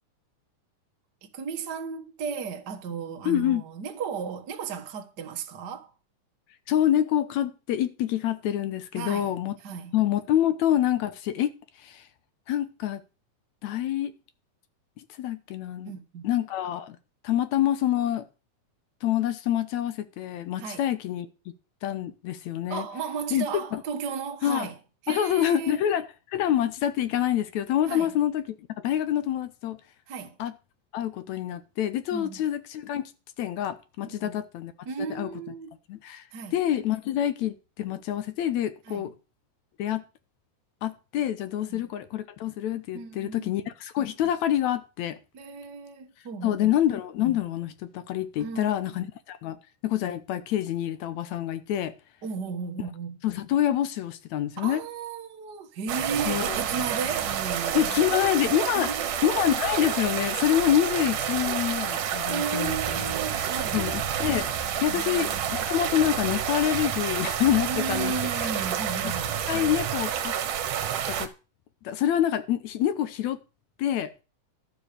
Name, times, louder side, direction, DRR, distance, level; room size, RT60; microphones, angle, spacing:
voice 1, 1.2-5.9 8.9-9.4 9.6-9.9 15.8-16.2 20.6-20.8 22.7-24.8 25.0-25.8 27.9-28.1 30.1-30.4 32.1-32.4 34.2-34.3 34.8-35.7 36.3-36.6 38.9-39.1 41.6-41.8 42.9-43.6 45.3-46.7 48.4-48.7 52.2-53.2 54.6-57.9 58.7-59.3 62.3-63.8 64.9-65.5 67.6-69.4, right 5 dB, 45° right, 1.6 m, -34 dB
voice 2, 3.3-3.6 6.7-9.6 9.9-11.5 11.8-12.1 12.5-13.0 13.6-14.1 15.0-15.9 16.2-17.0 17.2-18.3 19.0-21.3 21.8-22.9 23.3-23.8 24.4-24.7 25.1-29.8 30.4-30.5 30.9-33.0 33.4-34.7 35.0-35.3 35.9-36.2 36.5-39.1 39.8-40.0 40.8-45.2 46.4-51.9 53.2-54.8 56.3-56.6 57.7-58.9 59.2-63.2 63.7-68.5 69.0-69.1 69.5-70.4 71.1-71.3 71.8-73.4 73.8-74.1, left 11 dB, 70° left, 2.0 m, -27 dB
sound 1, 55.9-71.3, right 9 dB, 90° right, 2.8 m, -29 dB
12.0 x 6.9 x 6.7 m
omnidirectional pair, 3.6 m